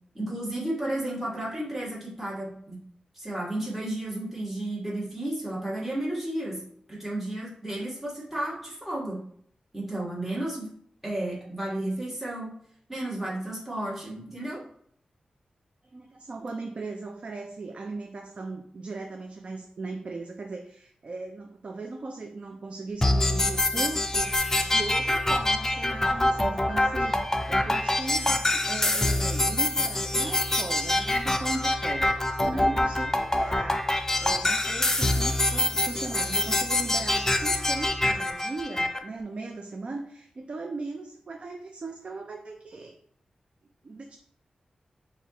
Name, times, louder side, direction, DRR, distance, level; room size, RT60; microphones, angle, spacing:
voice 1, 0.1-2.8 3.1-6.6 6.9-9.2 9.7-10.7 11.0-12.5 12.9-14.6 32.4-32.8, right 1 dB, 5° right, -6 dB, 1.4 m, -32 dB
voice 2, 15.9-43.0 43.8-44.2, right 3 dB, 50° right, 4 dB, 0.4 m, -38 dB
sound 1, 23.0-39.0, left 1 dB, 20° left, 0.5 m, -25 dB
6.7 x 2.4 x 2.9 m, 0.65 s
wide cardioid pair, 75°, 2 cm